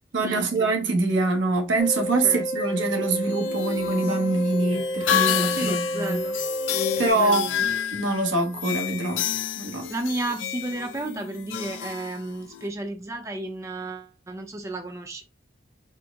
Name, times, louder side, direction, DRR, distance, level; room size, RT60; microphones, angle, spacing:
voice 1, 0.1-6.2 7.0-9.2 9.6-9.9, right 2 dB, 80° right, 0.9 m, -24 dB
sound 1, 1.8-7.1, equal, 20° left, 0.7 m, -30 dB
sound 2, 3.1-12.7, left 10 dB, 80° left, 0.4 m, -30 dB
voice 2, 5.5-6.4 7.2-7.6 9.9-15.2, right 2 dB, 15° right, 0.5 m, -32 dB
4.4 x 2.0 x 3.4 m
head